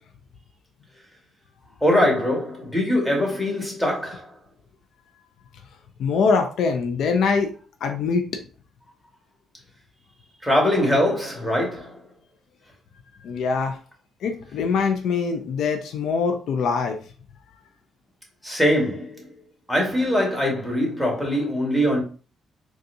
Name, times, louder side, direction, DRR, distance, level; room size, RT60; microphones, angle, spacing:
voice 1, 1.8-4.3 10.4-12.0 18.4-19.3 19.7-22.0, left 1 dB, ahead, 1.7 m, -22 dB
voice 2, 6.0-7.5 7.8-8.2 13.2-13.8 14.2-17.0, left 5 dB, 75° left, 0.5 m, -23 dB
4.1 x 2.3 x 2.6 m
cardioid pair, 90°, 0 cm